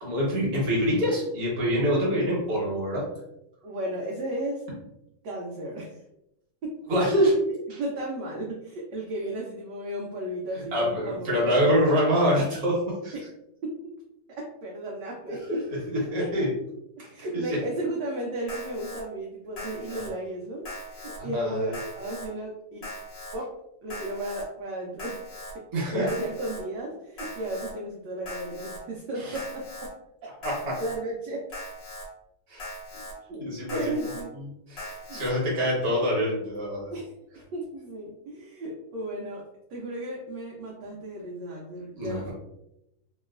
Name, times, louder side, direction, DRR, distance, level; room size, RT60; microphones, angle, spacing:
voice 1, 0.0-3.1 6.9-7.4 7.7-7.8 10.7-13.1 15.3-16.5 17.0-17.4 19.9-20.0 21.2-21.7 25.7-26.1 29.2-29.3 30.4-30.8 32.5-32.6 33.4-33.9 34.7-36.9 42.0-42.3, equal, 50° right, -5 dB, 1.3 m, -25 dB
voice 2, 3.6-4.6 5.2-6.0 6.6-6.8 7.5-11.8 13.1-13.3 13.6-13.8 14.4-15.6 16.2-16.3 17.1-22.9 23.3-25.2 25.9-29.9 30.8-31.5 33.3-33.4 33.7-34.4 34.9-35.2 35.7-36.0 36.9-37.1 37.5-39.4 39.7-42.3, right 1 dB, 70° right, -2 dB, 1.1 m, -34 dB
Alarm, 18.5-19.0 19.6-20.1 20.6-21.2 21.7-22.3 22.8-23.4 23.9-24.4 25.0-25.5 26.1-26.6 27.2-27.7 28.3-28.8 29.3-29.9 30.4-31.0 31.5-32.1 32.6-33.1 33.7-34.2 34.8-35.3, left 1 dB, 50° left, 1.2 m, -40 dB
3.1 x 2.8 x 2.3 m, 0.84 s
omnidirectional pair, 2.2 m